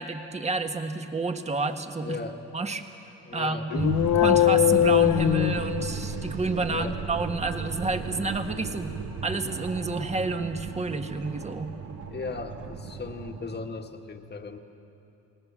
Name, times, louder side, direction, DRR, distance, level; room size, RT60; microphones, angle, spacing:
voice 1, 0.0-2.2 2.5-2.8 3.3-8.9 9.2-11.7, right 3 dB, 20° right, 6 dB, 1.6 m, -29 dB
voice 2, 2.0-2.4 3.2-3.7 6.7-7.0 12.1-14.6, left 4 dB, 35° left, 4 dB, 1.9 m, -37 dB
sound 1, 3.7-6.3, left 13 dB, 70° left, 0.7 m, -21 dB
sound 2, 3.8-13.7, right 5 dB, 70° right, 2.1 m, -35 dB
29.0 x 19.0 x 7.5 m, 2.9 s
cardioid pair, 90°, 30 cm